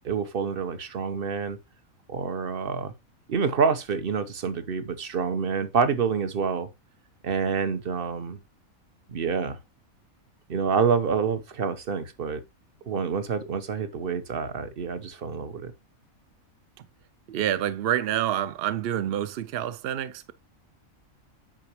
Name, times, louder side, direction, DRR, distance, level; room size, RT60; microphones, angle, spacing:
voice 1, 0.0-1.6 2.1-2.9 3.3-6.7 7.2-8.4 9.1-9.6 10.5-12.4 12.9-15.7, right 6 dB, 45° right, 1.1 m, -27 dB
voice 2, 17.3-20.3, right 11 dB, 65° right, 0.6 m, -27 dB
9.0 x 5.9 x 3.0 m
omnidirectional pair, 1.4 m